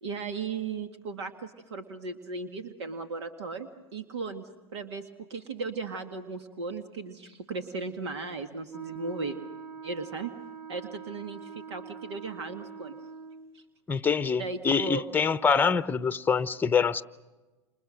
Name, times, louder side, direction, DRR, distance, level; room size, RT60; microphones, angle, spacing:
voice 1, 0.0-5.0 5.3-9.4 9.8-10.3 10.7-13.0 13.5-13.6 14.3-15.0, right 4 dB, 80° right, 1.9 m, -36 dB
Wind instrument woodwind instrument, 8.7-13.6, right 5 dB, 20° right, 2.0 m, -44 dB
voice 2, 13.9-17.0, left 6 dB, 15° left, 0.8 m, -25 dB
29.5 x 28.0 x 6.5 m
hypercardioid pair, 105°, 14 cm